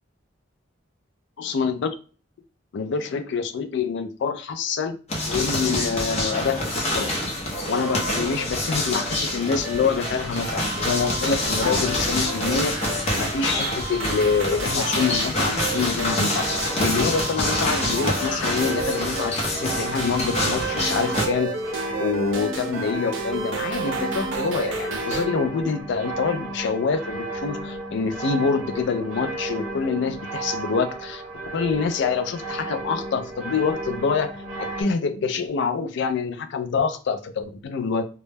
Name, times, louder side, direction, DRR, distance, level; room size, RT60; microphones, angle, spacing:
voice 1, 1.4-1.9 2.7-5.0 5.3-7.1 7.7-12.8 13.2-16.5 16.8-21.6 22.0-31.2 31.5-34.3 34.6-38.1, left 5 dB, 65° left, 0.4 m, -26 dB
sound 1, 5.1-21.3, left 1 dB, 35° left, 0.7 m, -26 dB
sound 2, 9.6-25.3, right 3 dB, 75° right, 0.5 m, -32 dB
sound 3, 16.1-34.8, right 2 dB, 40° right, 0.9 m, -33 dB
2.2 x 2.0 x 3.2 m
head